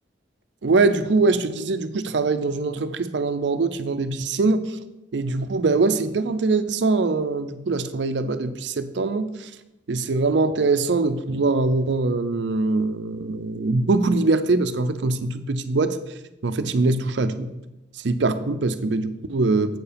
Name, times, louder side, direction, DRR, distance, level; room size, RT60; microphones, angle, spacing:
voice 1, 0.6-4.8 5.1-9.5 9.9-16.0 16.4-17.5 17.9-19.8, right 3 dB, 75° right, 10 dB, 0.5 m, -23 dB
7.8 x 4.6 x 5.1 m, 0.95 s
head